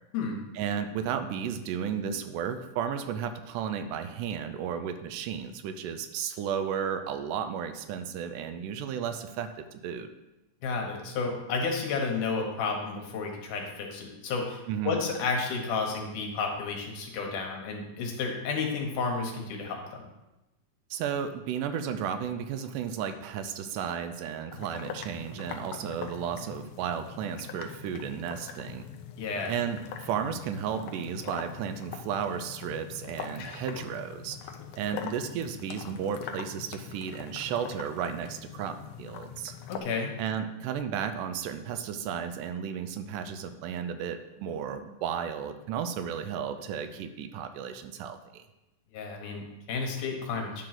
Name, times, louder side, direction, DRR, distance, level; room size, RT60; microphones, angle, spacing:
voice 1, 0.5-10.1 14.7-15.0 20.9-28.9 29.5-34.4 34.8-39.5 40.2-48.5, right 8 dB, 80° right, 9 dB, 2.1 m, -33 dB
voice 2, 10.6-20.0 29.2-29.5 39.7-40.1 48.9-50.6, left 4 dB, 75° left, 1 dB, 2.6 m, -32 dB
sound 1, 24.5-39.8, left 7 dB, 90° left, 1.4 m, -42 dB
10.0 x 3.8 x 5.9 m, 0.98 s
omnidirectional pair, 3.8 m